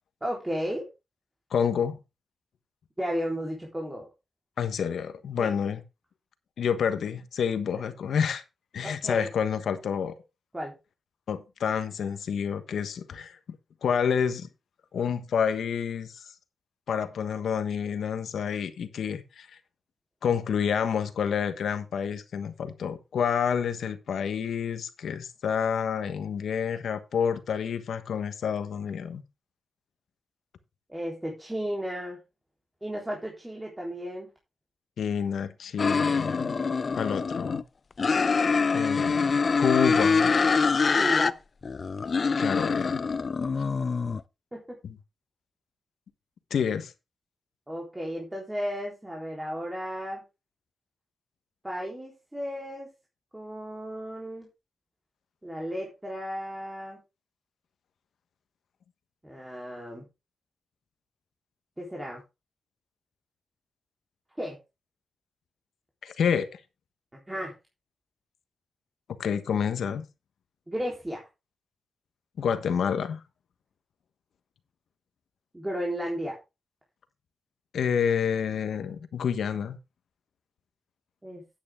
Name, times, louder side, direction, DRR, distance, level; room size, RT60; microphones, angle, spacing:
voice 1, 0.2-0.9 3.0-4.1 5.4-5.5 8.8-9.3 10.5-10.7 30.9-32.2 32.8-34.3 41.0-41.4 44.5-44.8 47.7-50.2 51.6-52.9 53.3-54.5 55.4-57.0 59.2-60.1 61.8-62.2 64.4-64.6 67.3-67.5 70.7-71.3 75.5-76.4 81.2-81.4, equal, 15° right, 3.8 m, -34 dB
voice 2, 1.5-2.0 4.6-5.8 6.6-8.4 8.7-10.1 11.3-14.5 14.9-16.3 16.9-19.6 20.2-29.2 35.0-36.6 37.0-37.6 38.7-40.4 42.4-43.1 44.8-45.0 46.5-46.9 66.0-66.6 69.1-70.0 72.4-73.2 77.7-79.8, left 7 dB, 85° left, 1.2 m, -28 dB
sound 1, 35.8-37.6 38.0-41.3 41.6-44.2, left 4 dB, 50° left, 0.5 m, -25 dB
9.8 x 8.7 x 3.7 m
cardioid pair, 65°, 0 cm